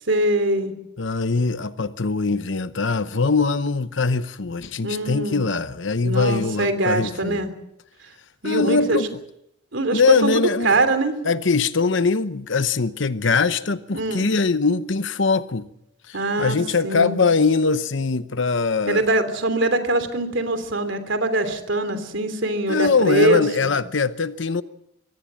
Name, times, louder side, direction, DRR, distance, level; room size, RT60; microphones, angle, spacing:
voice 1, 0.1-0.7 4.8-5.4 6.0-7.5 8.4-9.0 9.7-11.1 13.9-14.3 16.1-16.6 16.8-17.2 18.9-23.7, right 2 dB, 70° right, 3.1 m, -23 dB
voice 2, 1.0-7.4 8.4-9.2 9.9-10.8 11.2-15.7 16.1-19.1 22.7-24.6, left 4 dB, 70° left, 0.9 m, -22 dB
24.5 x 17.5 x 7.6 m
head